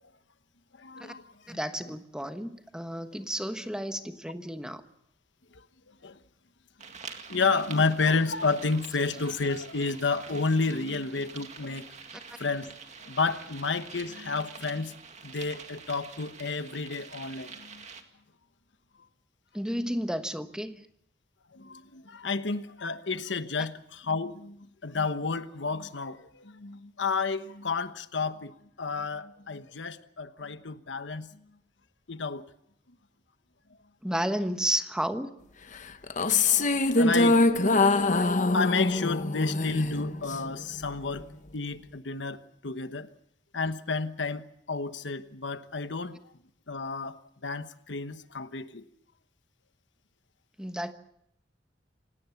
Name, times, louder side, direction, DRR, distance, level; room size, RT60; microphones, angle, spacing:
voice 1, 0.8-1.6 5.5-5.6 6.0-6.2 7.3-11.8 12.4-12.7 13.1-14.9 15.2-17.8 21.5-28.5 28.8-31.5 32.1-32.4 36.3-37.4 37.8-38.2 38.4-41.3 41.5-43.1 43.5-46.2 46.7-48.9, left 4 dB, 80° left, 1.1 m, -31 dB
voice 2, 1.5-4.8 12.1-12.2 19.5-20.8 34.0-35.3 38.1-38.2 50.6-50.9, equal, 5° right, 1.2 m, -32 dB
sound 1, 6.8-18.0, right 5 dB, 40° right, 2.1 m, -46 dB
sound 2, 36.0-40.5, left 3 dB, 45° left, 1.0 m, -24 dB
27.0 x 18.0 x 7.1 m
head